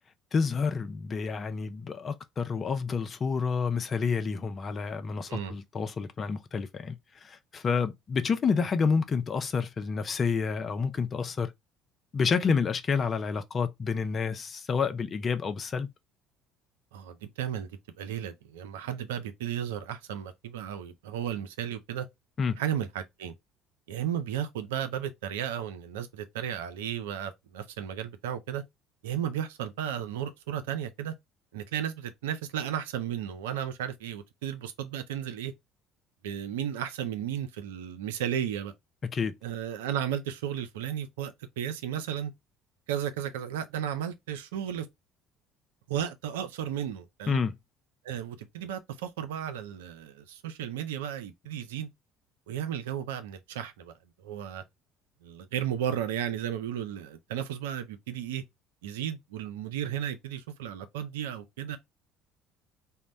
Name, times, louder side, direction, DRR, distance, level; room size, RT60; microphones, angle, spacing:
voice 1, 0.3-11.5 12.1-15.9 22.4-22.6 39.0-39.4 47.3-47.5, left 5 dB, 40° left, 0.4 m, -29 dB
voice 2, 16.9-17.7 17.9-22.1 22.6-23.3 23.9-28.6 29.0-31.1 31.5-35.5 36.2-38.7 39.4-42.3 42.9-44.9 45.9-47.4 48.0-51.9 52.5-53.9 54.2-54.6 55.2-58.4 58.8-61.8, right 10 dB, 75° right, 0.4 m, -34 dB
2.1 x 2.0 x 3.7 m
hypercardioid pair, 60°, 0 cm